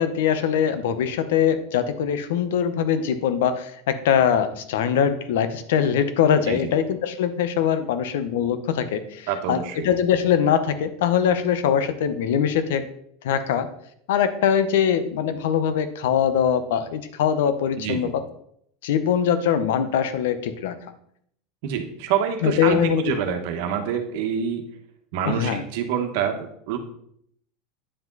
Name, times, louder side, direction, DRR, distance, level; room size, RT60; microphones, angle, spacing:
voice 1, 0.0-12.9 13.2-13.7 14.1-18.2 18.8-20.8 22.4-23.0 25.2-25.6, left 8 dB, 85° left, 11 dB, 0.8 m, -22 dB
voice 2, 9.3-9.9 17.8-18.1 21.6-24.6 25.1-26.8, right 8 dB, 55° right, 5 dB, 1.3 m, -26 dB
9.9 x 5.0 x 4.0 m, 0.67 s
supercardioid pair, 175°, 0 cm